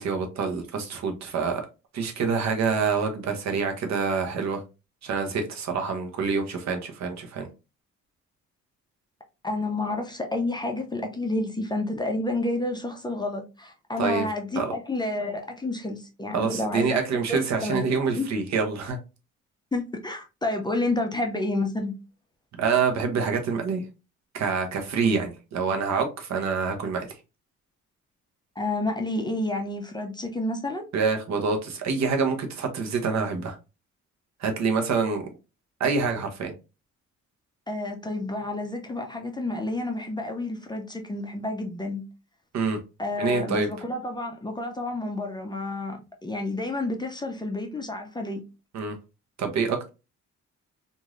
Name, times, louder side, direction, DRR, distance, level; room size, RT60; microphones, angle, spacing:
voice 1, 0.0-1.6 1.9-4.6 5.0-7.5 14.0-14.3 14.6-14.7 16.3-19.0 22.5-23.8 24.3-27.1 30.9-33.6 34.4-35.3 35.8-36.5 42.5-42.8 43.2-43.7 48.7-49.0 49.4-49.9, right 5 dB, 65° right, 0.8 m, -26 dB
voice 2, 9.4-17.0 17.3-17.8 18.2-18.3 19.7-21.9 28.6-30.9 37.7-42.0 43.0-48.4, left 2 dB, 15° left, 0.5 m, -30 dB
3.0 x 2.6 x 2.4 m
cardioid pair, 90°, 30 cm